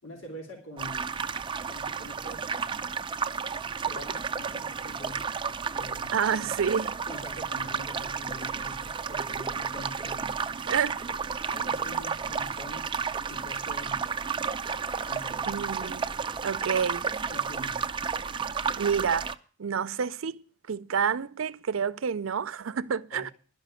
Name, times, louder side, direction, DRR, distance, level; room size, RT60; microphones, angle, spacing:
voice 1, 0.0-1.1 1.6-2.5 3.9-5.2 5.7-6.5 7.0-10.4 11.5-12.8 13.3-14.0 15.0-15.7 17.2-17.8 18.6-18.7 23.1-23.3, left 1 dB, 85° left, 3.7 m, -44 dB
sound 1, 0.8-19.3, right 6 dB, 25° right, 0.5 m, -32 dB
voice 2, 6.1-7.0 10.7-11.1 15.5-16.1 16.4-17.0 18.8-19.3 19.6-23.3, right 7 dB, 90° right, 0.5 m, -29 dB
12.0 x 5.7 x 9.0 m
head